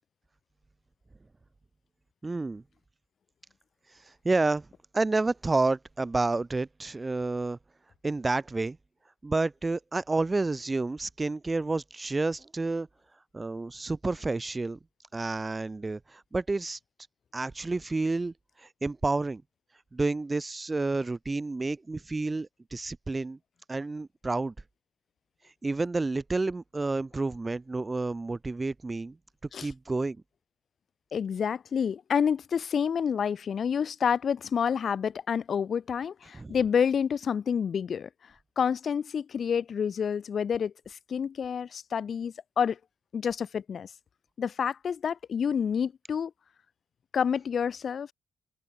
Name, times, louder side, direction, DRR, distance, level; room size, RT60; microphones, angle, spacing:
voice 1, 2.2-2.6 4.2-4.7 4.9-7.6 8.0-8.8 9.2-12.9 13.3-14.8 15.1-16.8 17.3-18.3 18.8-19.4 19.9-23.4 23.7-24.5 25.6-29.2 29.6-30.2 36.3-36.6, right 3 dB, 20° right, 1.7 m, -29 dB
voice 2, 31.1-38.1 38.6-42.8 43.1-43.9 44.4-46.3 47.1-48.1, left 7 dB, 50° left, 2.0 m, -28 dB
open air
cardioid pair, 90°, 0 cm